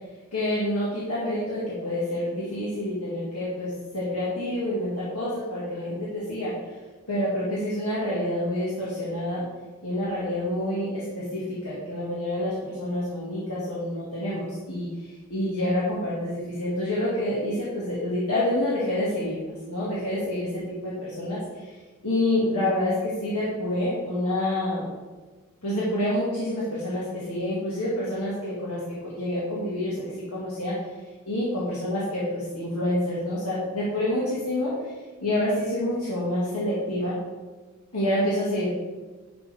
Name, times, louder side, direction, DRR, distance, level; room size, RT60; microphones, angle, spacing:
voice 1, 0.3-6.5 7.1-9.4 9.8-14.9 15.3-20.5 20.8-21.4 22.0-24.9 25.6-30.0 30.3-30.8 31.3-34.7 35.2-37.1 37.9-38.7, left 1 dB, 75° left, -8 dB, 1.9 m, -27 dB
10.5 x 6.1 x 3.4 m, 1.3 s
head